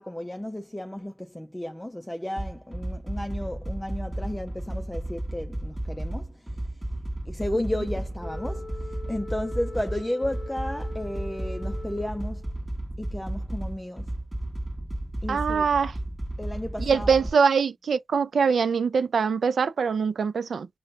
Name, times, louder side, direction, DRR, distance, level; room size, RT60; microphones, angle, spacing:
voice 1, 0.0-6.8 7.2-12.4 13.0-14.1 15.2-15.7 16.4-17.3, left 1 dB, 10° left, 0.4 m, -33 dB
sound 1, 2.4-17.3, right 1 dB, 15° right, 1.2 m, -33 dB
Wind instrument woodwind instrument, 8.2-12.6, left 3 dB, 50° left, 0.7 m, -42 dB
voice 2, 15.3-15.9 16.8-20.7, right 6 dB, 80° right, 0.4 m, -23 dB
5.1 x 2.1 x 2.6 m
wide cardioid pair, 105°, 0 cm